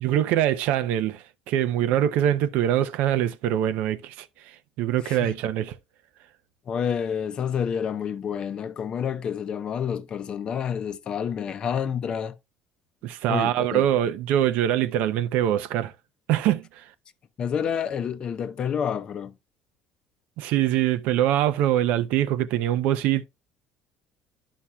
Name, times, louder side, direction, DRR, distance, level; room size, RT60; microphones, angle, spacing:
voice 1, 0.0-4.3 4.8-5.7 13.0-15.9 16.3-16.6 20.4-23.2, right 11 dB, 70° right, 0.6 m, -23 dB
voice 2, 5.0-5.4 6.7-12.4 13.3-13.9 17.4-19.3, left 7 dB, 35° left, 0.6 m, -29 dB
11.0 x 5.8 x 2.3 m
cardioid pair, 155°, 3 cm